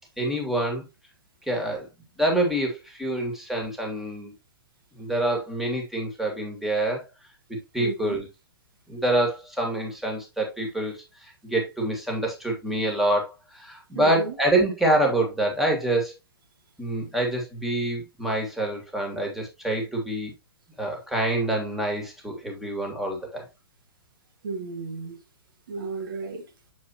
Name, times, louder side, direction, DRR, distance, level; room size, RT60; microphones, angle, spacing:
voice 1, 0.2-0.8 1.5-1.9 2.2-4.3 5.0-7.1 7.7-8.3 8.9-16.1 16.8-20.3 20.8-23.5, right 1 dB, ahead, 2.1 m, -26 dB
voice 2, 7.8-8.2 13.9-14.4 24.4-25.2 25.7-26.4, right 3 dB, 65° right, 1.9 m, -32 dB
7.3 x 4.6 x 2.9 m
figure-of-eight pair, 115°, 12 cm